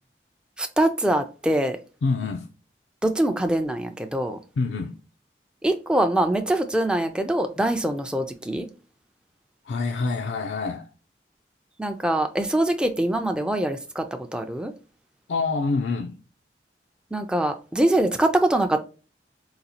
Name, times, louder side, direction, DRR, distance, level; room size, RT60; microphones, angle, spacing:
voice 1, 0.6-1.8 3.0-4.4 5.6-8.7 11.8-14.0 14.3-14.7 17.1-18.8, right 1 dB, 5° right, 0.3 m, -23 dB
voice 2, 2.0-2.5 4.6-5.0 9.6-10.9 15.3-16.2, left 3 dB, 85° left, 0.4 m, -26 dB
3.9 x 2.3 x 2.8 m
head